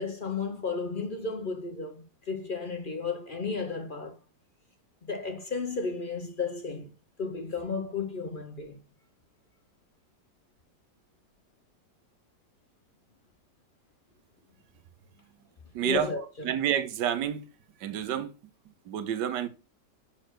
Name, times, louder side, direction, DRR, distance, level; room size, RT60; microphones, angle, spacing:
voice 1, 0.0-4.2 5.1-6.9 7.2-8.8 15.8-16.6, left 4 dB, 50° left, 0.6 m, -33 dB
voice 2, 15.7-16.1 16.4-17.4 17.8-18.3 18.9-19.5, right 10 dB, 75° right, 1.5 m, -29 dB
6.3 x 4.4 x 6.1 m
omnidirectional pair, 1.9 m